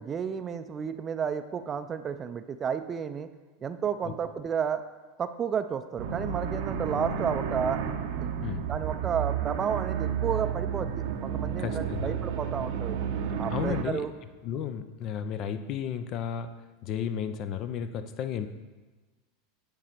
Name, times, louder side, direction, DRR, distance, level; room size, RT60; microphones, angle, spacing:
voice 1, 0.0-3.3 3.6-4.8 5.2-7.8 8.2-8.3 8.7-13.0 13.4-14.1, right 7 dB, 30° right, 11 dB, 0.4 m, -32 dB
sound 1, 6.0-13.8, right 8 dB, 65° right, 0.7 m, -31 dB
voice 2, 11.6-12.1 13.5-14.1 14.4-18.5, left 8 dB, 50° left, 10 dB, 0.5 m, -33 dB
8.8 x 4.0 x 4.4 m, 1.2 s
hypercardioid pair, 95°, 0 cm